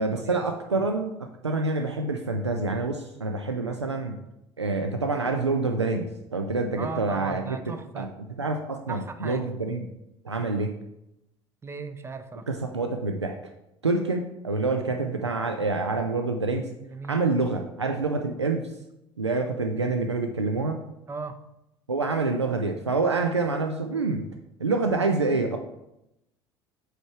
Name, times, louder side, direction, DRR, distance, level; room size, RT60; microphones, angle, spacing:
voice 1, 0.0-4.2 4.6-7.6 8.0-8.1 8.4-9.8 10.2-10.7 12.5-13.5 13.8-16.7 17.1-18.7 19.2-20.8 21.9-24.2 24.6-25.6, right 3 dB, 90° right, 5 dB, 0.4 m, -27 dB
voice 2, 6.8-8.1 8.9-9.5 11.6-12.5 16.9-17.2 21.1-21.4, right 4 dB, 20° right, 10 dB, 0.5 m, -37 dB
7.6 x 3.2 x 4.5 m, 0.87 s
figure-of-eight pair, 65°, 14 cm